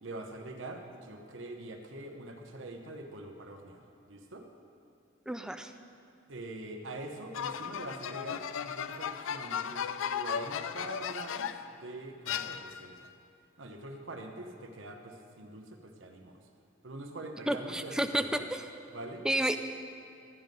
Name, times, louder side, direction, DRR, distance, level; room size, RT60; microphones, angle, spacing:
voice 1, 0.0-3.8 4.1-4.4 6.3-13.1 13.6-16.4 16.8-18.5 18.9-19.3, right 2 dB, 75° right, 4 dB, 0.9 m, -44 dB
voice 2, 5.3-5.7 17.5-18.2 18.5-18.6 19.2-19.6, right 1 dB, 5° right, 8 dB, 0.4 m, -30 dB
sound 1, 7.3-11.7 12.3-13.0, left 8 dB, 90° left, 0.4 m, -36 dB
12.5 x 9.3 x 5.3 m, 2.5 s
head